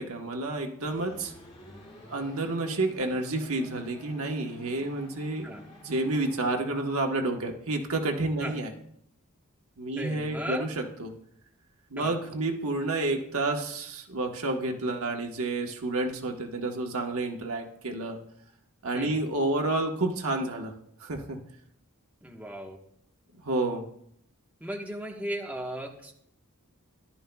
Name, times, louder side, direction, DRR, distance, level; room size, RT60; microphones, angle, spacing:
voice 1, 0.0-1.3 2.1-5.5 5.8-8.7 9.8-11.1 11.9-18.2 18.8-20.7 21.0-21.4 23.4-23.8, right 2 dB, 75° right, 2 dB, 1.3 m, -30 dB
sound 1, 0.8-6.5, left 1 dB, 30° left, 2.3 m, -51 dB
voice 2, 9.9-10.7 12.0-12.1 18.9-19.1 22.2-22.8 24.6-26.1, right 1 dB, 5° right, 0 dB, 1.3 m, -36 dB
14.5 x 12.0 x 2.3 m, 0.70 s
head